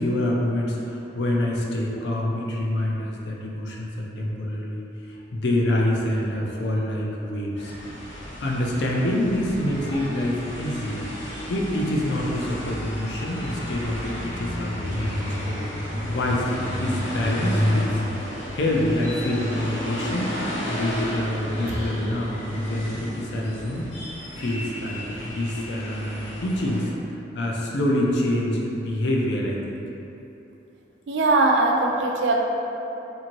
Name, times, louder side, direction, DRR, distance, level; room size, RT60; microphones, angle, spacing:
voice 1, 0.0-4.8 5.3-7.7 8.4-11.0 11.5-15.7 16.1-18.0 18.5-20.4 20.7-23.9 24.4-26.9 27.3-29.8, left 1 dB, 65° left, -2 dB, 0.4 m, -26 dB
sound 1, 7.6-26.8, equal, 85° left, 0.8 m, -31 dB
voice 2, 31.1-32.4, right 2 dB, 70° right, 1 dB, 0.3 m, -20 dB
2.7 x 2.5 x 2.9 m, 2.9 s
head